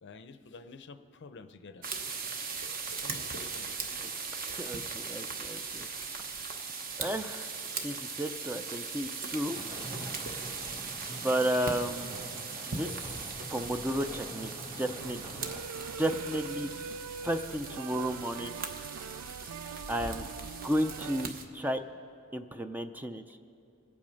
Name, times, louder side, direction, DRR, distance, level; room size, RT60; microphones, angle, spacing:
voice 1, 0.0-2.2 2.5-2.7 3.0-3.9 18.3-18.4, left 4 dB, 55° left, 10 dB, 0.6 m, -51 dB
sound 1, 1.8-21.5, right 4 dB, 45° right, 1.0 m, -39 dB
voice 2, 4.5-5.9 7.0-7.5 7.8-9.6 11.2-12.4 12.7-15.4 16.0-16.7 17.2-18.6 19.6-21.8 22.3-23.4, right 1 dB, 10° right, 8 dB, 0.4 m, -33 dB
sound 2, 9.5-15.6, right 1 dB, 25° right, 1.9 m, -45 dB
sound 3, 15.0-21.3, right 6 dB, 85° right, 0.3 m, -43 dB
24.5 x 8.7 x 5.2 m, 2.7 s
head